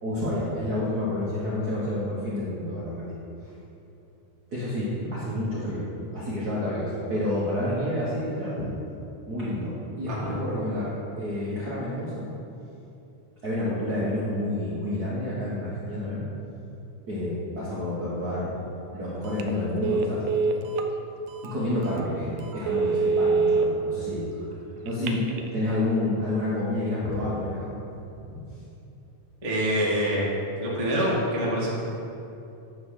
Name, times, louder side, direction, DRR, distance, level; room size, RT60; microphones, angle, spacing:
voice 1, 0.0-3.2 3.4-3.5 4.5-8.7 9.3-12.3 13.4-16.2 17.1-18.6 18.9-20.2 21.4-24.2 24.8-25.3 25.5-27.7 28.3-28.4, left 1 dB, 50° right, -9 dB, 1.1 m, -29 dB
Telephone, 19.2-19.5 19.8-20.9 21.4-21.5 22.0-22.1 22.5-23.6 24.9-25.5, right 4 dB, 80° right, 1.5 m, -24 dB
voice 2, 29.4-30.3 30.6-31.8, equal, 20° right, -7 dB, 0.9 m, -25 dB
9.4 x 3.6 x 6.5 m, 2.8 s
omnidirectional pair, 3.4 m